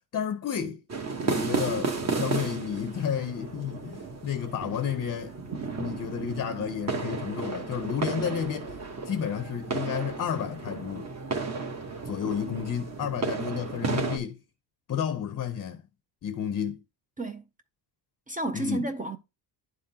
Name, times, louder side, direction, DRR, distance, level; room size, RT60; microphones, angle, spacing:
voice 1, 0.1-0.8 1.2-5.3 5.7-8.7 9.0-11.1 12.0-14.4 14.9-15.8 16.2-16.8 18.5-18.9, left 8 dB, 35° left, 0.6 m, -31 dB
sound 1, 0.9-14.2, right 4 dB, 35° right, 1.0 m, -33 dB
voice 2, 18.3-19.2, right 2 dB, 20° right, 0.4 m, -31 dB
11.0 x 3.7 x 2.7 m
cardioid pair, 125°, 45 cm